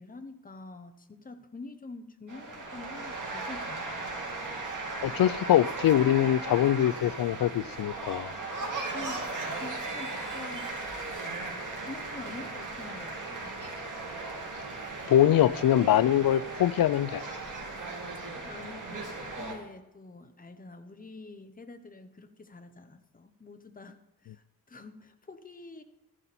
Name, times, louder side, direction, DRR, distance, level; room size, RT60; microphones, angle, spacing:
voice 1, 0.0-4.1 8.9-10.8 11.9-13.5 18.4-19.1 19.4-25.8, left 3 dB, 25° left, 0.9 m, -46 dB
sound 1, 2.3-19.5, right 3 dB, 60° right, 2.6 m, -37 dB
voice 2, 5.0-8.3 15.1-17.2, left 11 dB, 75° left, 0.5 m, -23 dB
13.5 x 11.0 x 4.2 m
wide cardioid pair, 145°, 35 cm